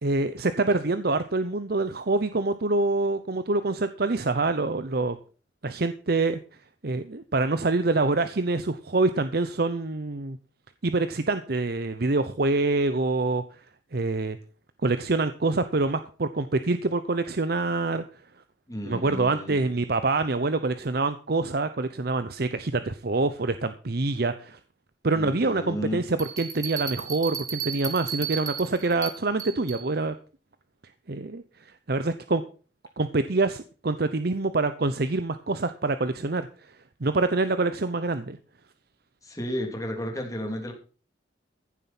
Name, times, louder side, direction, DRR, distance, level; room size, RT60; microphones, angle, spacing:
voice 1, 0.0-5.2 5.6-6.4 6.8-10.4 10.8-13.4 13.9-14.4 14.8-18.0 18.9-24.6 25.0-30.1 31.1-31.4 31.9-32.4 33.0-36.5 37.0-38.4, right 3 dB, 55° right, 11 dB, 0.8 m, -26 dB
voice 2, 18.7-19.7 25.1-26.0 39.2-40.7, equal, 20° left, 2 dB, 3.2 m, -33 dB
Bell, 26.2-29.9, right 8 dB, 20° right, 2.9 m, -34 dB
15.0 x 7.6 x 5.9 m, 0.38 s
head